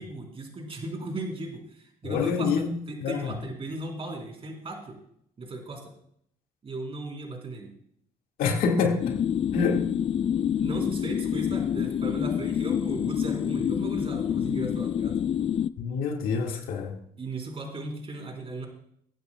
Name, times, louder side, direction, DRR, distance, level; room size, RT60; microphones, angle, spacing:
voice 1, 0.0-2.5 2.9-5.0 5.4-5.9 6.6-7.7 10.6-15.2 17.2-18.7, right 2 dB, 40° right, 3.5 m, -36 dB
voice 2, 2.0-3.3 8.4-9.2 9.5-9.9 15.8-17.0, left 5 dB, 80° left, 1.8 m, -26 dB
sound 1, 9.0-15.7, left 9 dB, 40° left, 0.3 m, -27 dB
23.5 x 9.2 x 2.2 m
supercardioid pair, 75°, 15 cm